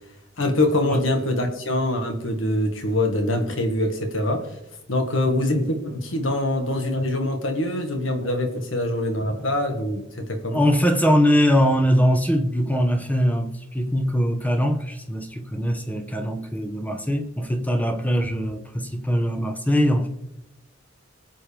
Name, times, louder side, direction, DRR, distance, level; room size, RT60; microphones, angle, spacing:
voice 1, 0.4-4.5 4.9-10.6, left 1 dB, 90° left, 1.7 m, -24 dB
voice 2, 10.5-20.1, equal, 10° left, 1.1 m, -22 dB
21.5 x 7.6 x 3.5 m
head